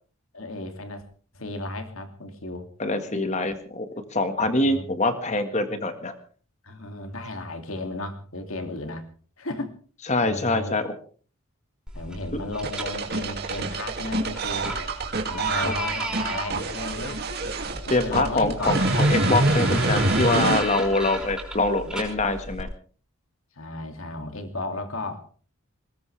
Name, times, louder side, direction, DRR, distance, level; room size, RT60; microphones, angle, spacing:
voice 1, 0.3-1.0 1.3-2.7 4.0-4.1 4.4-4.8 6.6-9.0 9.4-9.7 10.2-10.8 11.9-14.7 15.3-17.2 18.0-18.9 19.3-19.4 23.6-25.3, left 2 dB, 70° left, 6 dB, 2.7 m, -34 dB
voice 2, 2.8-3.8 4.1-6.1 10.1-10.9 12.4-12.5 15.6-15.7 17.9-22.7, left 2 dB, 30° left, 9 dB, 1.7 m, -24 dB
sound 1, 11.9-22.6, right 1 dB, 5° right, 5.5 m, -35 dB
sound 2, 12.6-20.6, right 2 dB, 45° right, 2.5 m, -26 dB
21.5 x 19.0 x 3.4 m, 0.41 s
head